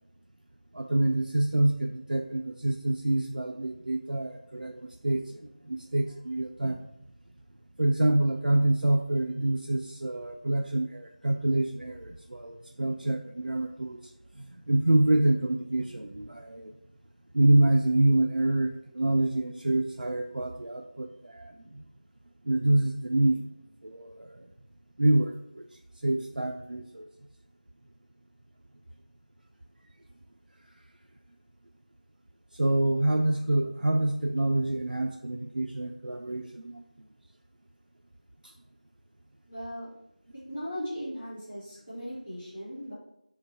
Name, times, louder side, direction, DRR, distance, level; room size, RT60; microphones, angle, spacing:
voice 1, 0.7-6.9 7.8-14.0 14.4-16.7 17.3-21.8 22.4-23.4 23.8-24.5 25.0-25.6 26.0-27.0 32.5-36.8 38.4-38.5, right 1 dB, 80° right, 4 dB, 0.4 m, -26 dB
voice 2, 39.5-39.9 40.5-42.9, equal, 5° left, -14 dB, 0.5 m, -37 dB
3.9 x 3.2 x 4.1 m, 0.82 s
figure-of-eight pair, 175°, 5 cm